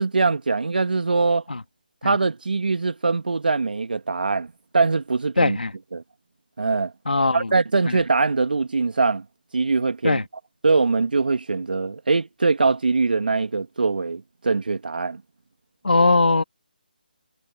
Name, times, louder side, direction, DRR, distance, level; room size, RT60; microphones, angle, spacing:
voice 1, 0.0-1.4 2.0-4.5 4.7-5.6 5.9-6.0 6.6-6.9 7.3-9.2 9.5-10.2 10.6-15.2, right 4 dB, 70° right, 2.1 m, -22 dB
voice 2, 5.4-5.7 7.1-7.5 7.9-8.0 10.0-10.2 15.8-16.4, left 3 dB, 80° left, 2.9 m, -20 dB
figure-of-eight pair, 155°, 5 cm